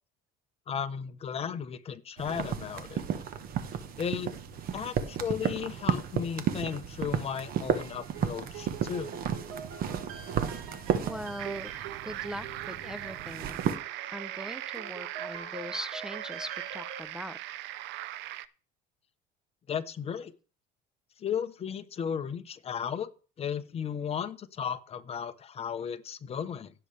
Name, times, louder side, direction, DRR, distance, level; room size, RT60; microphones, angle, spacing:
voice 1, 0.7-3.0 4.0-4.3 4.7-9.1 19.7-20.3 21.2-23.1 23.4-26.7, left 7 dB, 30° left, 10 dB, 0.9 m, -35 dB
sound 1, 2.2-13.8, right 8 dB, 50° right, 1.3 m, -33 dB
sound 2, 7.5-17.0, right 6 dB, 85° right, 2.6 m, -45 dB
voice 2, 11.0-11.7 12.0-13.6 14.1-17.4, equal, 5° right, 14 dB, 0.6 m, -41 dB
sound 3, 11.4-18.5, right 15 dB, 65° right, 0.6 m, -40 dB
16.5 x 6.7 x 3.4 m, 0.36 s
cardioid pair, 130°, 20 cm